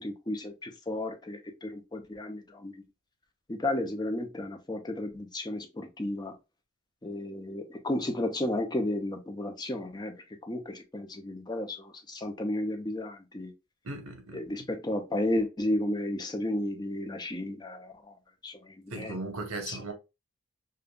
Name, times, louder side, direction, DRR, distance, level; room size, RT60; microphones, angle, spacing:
voice 1, 0.0-2.7 3.5-6.3 7.0-10.1 10.4-13.5 14.3-17.9 18.4-19.2 19.7-19.8, left 1 dB, 20° left, 0.5 m, -33 dB
voice 2, 13.8-14.4 18.9-19.9, right 2 dB, 90° right, 0.9 m, -37 dB
5.1 x 2.2 x 2.2 m
head